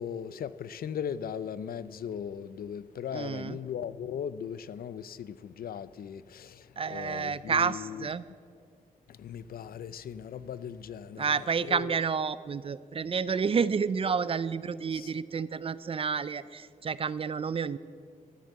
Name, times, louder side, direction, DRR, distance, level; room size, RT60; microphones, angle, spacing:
voice 1, 0.0-8.1 9.1-11.9 14.9-15.1, left 8 dB, 85° left, 0.4 m, -38 dB
voice 2, 3.1-3.6 6.8-8.2 11.2-17.8, right 6 dB, 40° right, 0.4 m, -30 dB
12.5 x 8.1 x 7.8 m
wide cardioid pair, 125°, 15 cm